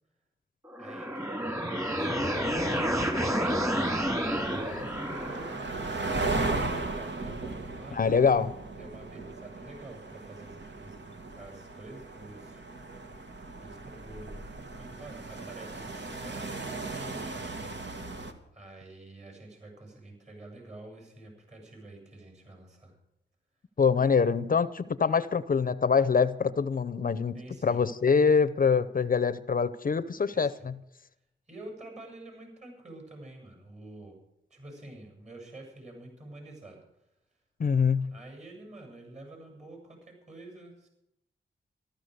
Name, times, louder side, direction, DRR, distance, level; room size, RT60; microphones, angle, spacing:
sound 1, 0.6-5.6, equal, 15° right, 2.9 m, -30 dB
voice 1, 0.8-2.8 4.0-8.0 8.7-12.6 13.6-14.4 14.7-17.1 18.5-23.0 27.3-27.8 30.3-30.7 31.5-34.2 34.5-36.8 38.1-40.9, right 2 dB, 35° right, 3 dB, 7.6 m, -47 dB
sound 2, 2.2-18.3, right 3 dB, 65° right, 1.9 m, -37 dB
voice 2, 7.9-8.5 23.8-30.8 37.6-38.1, left 5 dB, 45° left, 15 dB, 0.7 m, -25 dB
14.0 x 13.0 x 6.6 m, 0.80 s
cardioid pair, 75°, 20 cm